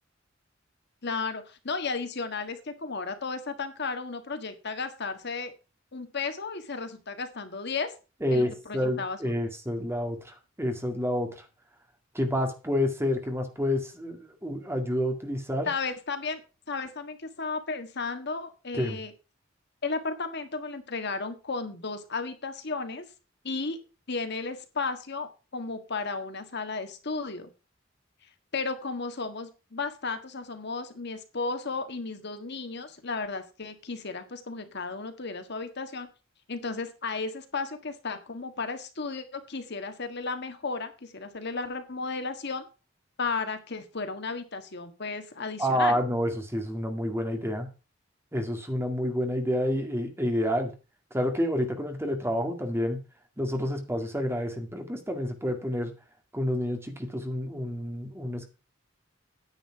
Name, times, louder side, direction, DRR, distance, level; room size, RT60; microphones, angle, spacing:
voice 1, 1.0-5.5 5.9-7.9 8.3-9.3 15.6-16.4 16.7-19.1 19.8-23.0 23.4-23.8 24.1-27.5 28.5-36.1 36.5-42.7 43.2-46.0, left 4 dB, 60° left, 8 dB, 1.6 m, -34 dB
voice 2, 8.2-11.4 12.1-15.7 18.7-19.0 45.6-47.7 48.3-50.7 51.1-53.0 53.4-55.9 56.3-58.5, equal, 15° right, 5 dB, 2.0 m, -29 dB
9.8 x 9.0 x 4.6 m, 0.31 s
head